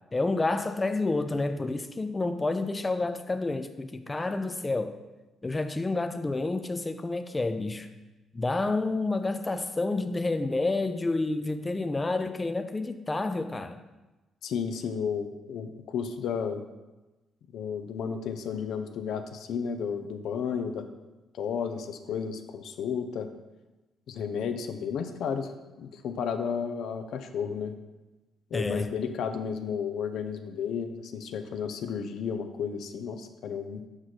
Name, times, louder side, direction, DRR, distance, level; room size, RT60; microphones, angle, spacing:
voice 1, 0.1-4.9 5.4-7.9 8.3-13.8 28.5-28.9, left 2 dB, 20° left, 0.4 m, -29 dB
voice 2, 14.4-16.6 17.5-20.9 21.3-23.3 24.1-25.5 25.8-27.7 28.5-33.8, left 6 dB, 75° left, 0.5 m, -32 dB
6.1 x 4.9 x 4.1 m
cardioid pair, 90°, 0 cm